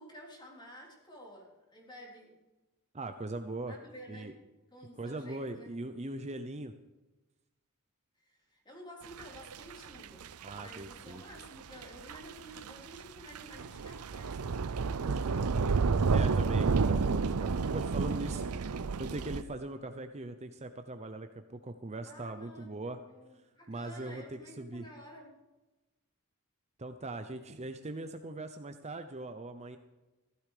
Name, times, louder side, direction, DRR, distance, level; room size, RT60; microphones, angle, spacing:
voice 1, 0.0-2.4 3.6-4.3 4.7-5.7 8.2-15.5 18.3-19.0 22.1-22.7 23.1-25.4, equal, 20° left, -1 dB, 3.8 m, -52 dB
voice 2, 2.9-3.7 4.1-4.3 5.0-6.7 10.4-11.2 15.2-15.7 16.1-18.5 19.0-23.0 23.7-24.2 24.6-24.9 26.8-29.8, right 2 dB, 30° right, 8 dB, 0.8 m, -40 dB
sound 1, 9.2-9.7 10.0-10.9 11.4-11.5 11.7-11.8 12.1-12.2 12.6-13.0 13.4-19.4, right 4 dB, 80° right, 0.6 m, -30 dB
15.5 x 13.0 x 5.0 m, 1.1 s
head